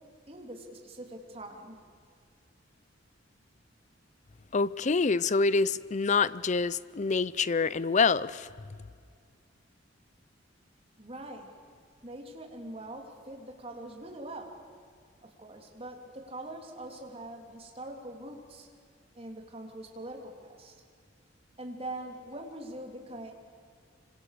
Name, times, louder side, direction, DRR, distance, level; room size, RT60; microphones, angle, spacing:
voice 1, 0.3-1.8 11.0-11.5 12.0-14.5 15.2-18.7 19.1-20.7 21.6-23.3, right 1 dB, 30° right, 3.3 m, -43 dB
voice 2, 4.5-8.5, left 4 dB, 40° left, 0.5 m, -26 dB
27.0 x 26.0 x 6.8 m
head